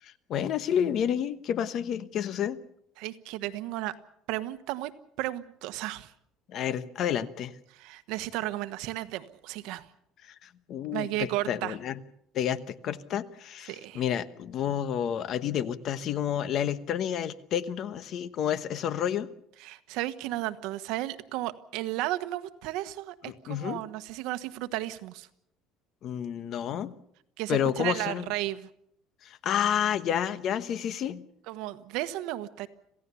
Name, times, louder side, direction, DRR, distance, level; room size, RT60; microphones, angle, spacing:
voice 1, 0.3-2.6 6.5-7.6 10.2-12.0 12.3-19.3 23.2-23.8 26.0-26.9 27.5-28.2 29.2-31.2, left 9 dB, 45° left, 13 dB, 1.1 m, -30 dB
voice 2, 3.0-3.9 4.3-4.9 5.2-6.1 7.7-9.9 10.9-11.8 13.7-14.0 19.6-25.3 27.4-28.7 31.5-32.7, right 16 dB, 70° right, 12 dB, 1.3 m, -34 dB
27.0 x 16.0 x 7.0 m, 0.74 s
cardioid pair, 160°, 0 cm